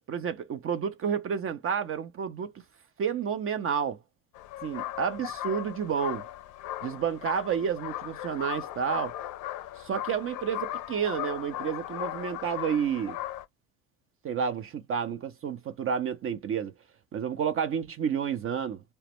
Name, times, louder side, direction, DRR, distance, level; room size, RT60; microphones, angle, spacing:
voice 1, 0.0-2.5 3.0-4.0 4.6-6.2 6.8-9.2 9.8-13.2 14.2-16.7 17.1-18.8, right 7 dB, 35° right, 0.4 m, -30 dB
sound 1, 4.3-13.4, left 14 dB, 55° left, 0.5 m, -37 dB
2.1 x 2.0 x 2.9 m
hypercardioid pair, 75°, 39 cm